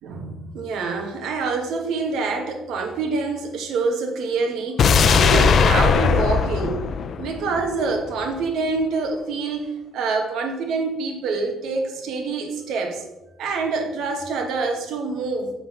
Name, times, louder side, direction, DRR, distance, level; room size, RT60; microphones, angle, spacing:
voice 1, 0.0-6.8 7.2-13.0 13.4-15.5, right 4 dB, 70° right, 4 dB, 1.5 m, -26 dB
sound 1, 4.8-7.9 8.2-8.3, left 6 dB, 50° left, 0.6 m, -19 dB
7.0 x 5.9 x 5.1 m, 0.98 s
cardioid pair, 115°, 0 cm